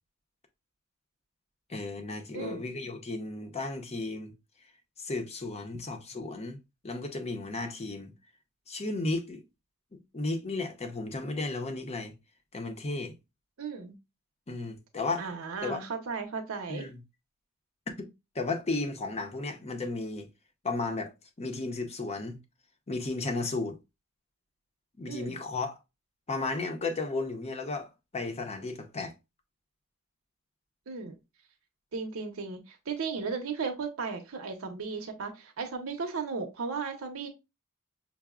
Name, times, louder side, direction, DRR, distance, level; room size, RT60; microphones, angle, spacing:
voice 1, 1.7-4.3 5.0-6.6 6.8-8.1 8.7-9.4 9.9-12.1 12.5-13.1 14.5-15.3 15.6-15.8 16.7-17.0 18.0-18.1 18.3-20.3 20.6-21.1 21.4-22.4 22.9-23.8 25.0-25.8 26.3-29.1, left 3 dB, 30° left, 0.6 m, -34 dB
voice 2, 13.6-13.9 15.2-16.9 25.1-25.4 30.9-31.2 31.9-37.3, right 5 dB, 90° right, 0.7 m, -35 dB
5.7 x 2.0 x 2.3 m
head